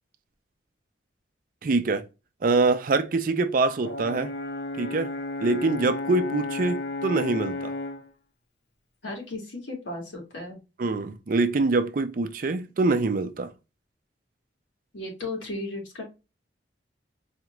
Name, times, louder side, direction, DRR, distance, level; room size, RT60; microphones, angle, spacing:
voice 1, 1.6-2.0 2.4-4.3 4.8-5.1 5.4-7.7 10.8-13.5, right 3 dB, 45° right, 0.4 m, -24 dB
Brass instrument, 3.8-8.1, left 2 dB, 65° left, 0.9 m, -33 dB
voice 2, 9.0-10.6 14.9-16.0, left 2 dB, 85° left, 1.9 m, -35 dB
4.2 x 2.4 x 3.0 m
head